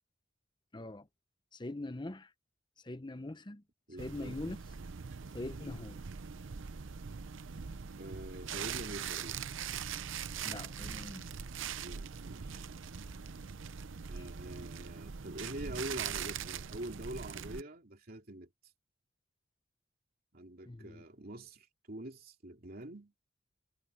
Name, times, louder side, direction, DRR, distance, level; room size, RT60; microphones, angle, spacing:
voice 1, 0.7-1.1 1.5-2.3 2.8-3.6 4.0-4.6 5.3-6.0 10.4-11.3 20.7-21.0, left 1 dB, 25° left, 0.8 m, -42 dB
voice 2, 3.9-4.4 5.4-5.8 7.9-9.4 11.8-12.6 14.1-18.5 20.3-23.2, right 1 dB, 50° right, 3.0 m, -45 dB
sound 1, 4.0-17.6, right 7 dB, 75° right, 0.7 m, -42 dB
head